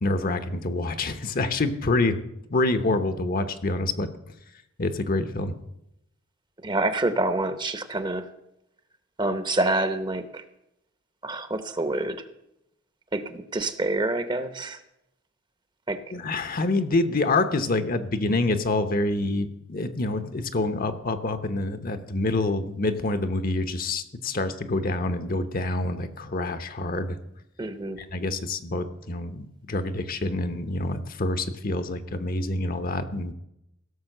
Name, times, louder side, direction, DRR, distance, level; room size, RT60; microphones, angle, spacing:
voice 1, 0.0-2.2 2.5-4.1 4.8-5.6 16.1-27.2 28.0-33.3, left 2 dB, 45° left, 10 dB, 0.9 m, -27 dB
voice 2, 6.6-8.3 9.2-10.4 11.2-12.2 13.1-14.8 15.9-16.0 27.6-28.0, right 2 dB, 20° right, 11 dB, 0.8 m, -27 dB
16.0 x 6.8 x 6.6 m, 0.83 s
head